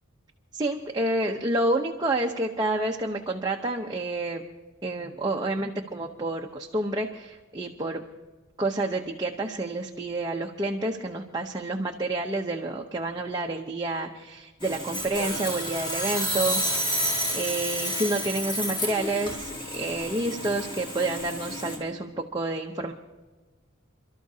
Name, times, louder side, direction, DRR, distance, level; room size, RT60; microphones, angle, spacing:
voice 1, 0.5-4.4 4.8-8.0 8.6-22.9, right 2 dB, 20° right, 0 dB, 0.8 m, -29 dB
Sawing, 14.6-21.8, equal, 25° left, 3.2 m, -30 dB
29.0 x 12.5 x 2.8 m, 1.2 s
head